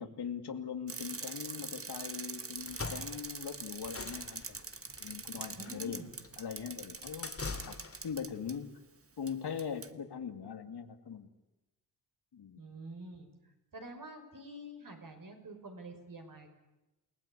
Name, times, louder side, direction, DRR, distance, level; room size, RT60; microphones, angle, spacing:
voice 1, 0.0-4.6 5.0-6.0 6.4-7.3 7.6-7.8 8.0-8.7 9.2-11.3 12.3-12.6, left 7 dB, 90° left, 7 dB, 2.4 m, -41 dB
Bicycle, 0.9-8.5 9.3-9.4 9.6-9.9, right 4 dB, 35° right, 1.4 m, -44 dB
sound 1, 2.6-8.2, left 3 dB, 35° left, 2.4 m, -44 dB
voice 2, 5.6-6.1 12.6-13.3 13.7-16.6, right 1 dB, 55° right, 5 dB, 5.8 m, -47 dB
28.5 x 19.5 x 10.0 m, 1.0 s
wide cardioid pair, 125°, 39 cm